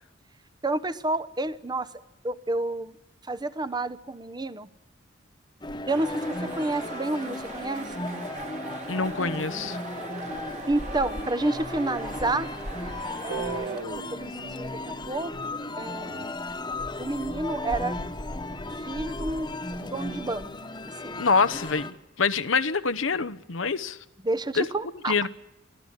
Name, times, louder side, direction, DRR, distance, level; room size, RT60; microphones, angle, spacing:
voice 1, 0.6-1.9 2.2-2.9 3.2-4.7 5.9-8.1 10.7-12.5 13.2-15.3 15.8-16.4 17.0-18.0 18.8-19.5 19.9-20.5 21.0-21.2 24.2-25.3, right 2 dB, 20° right, 0.9 m, -30 dB
sound 1, 5.6-21.9, left 2 dB, 25° left, 1.3 m, -35 dB
sound 2, 5.9-13.8, right 3 dB, 40° right, 2.0 m, -40 dB
voice 2, 8.9-9.8 21.2-24.0 24.6-24.7 25.1-25.3, left 4 dB, 80° left, 1.0 m, -25 dB
Guitar, 13.3-16.2, right 7 dB, 85° right, 0.8 m, -39 dB
24.0 x 14.5 x 9.5 m
head